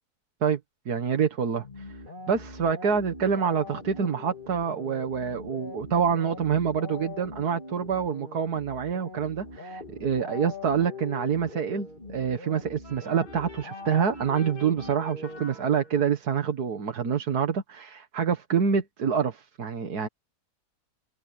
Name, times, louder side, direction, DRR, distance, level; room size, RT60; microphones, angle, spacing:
voice 1, 0.9-1.6 2.3-20.1, right 7 dB, 85° right, 2.1 m, -26 dB
sound 1, 1.6-15.9, left 2 dB, 30° left, 2.9 m, -42 dB
sound 2, 12.8-16.3, left 3 dB, 55° left, 6.7 m, -50 dB
omnidirectional pair, 1.6 m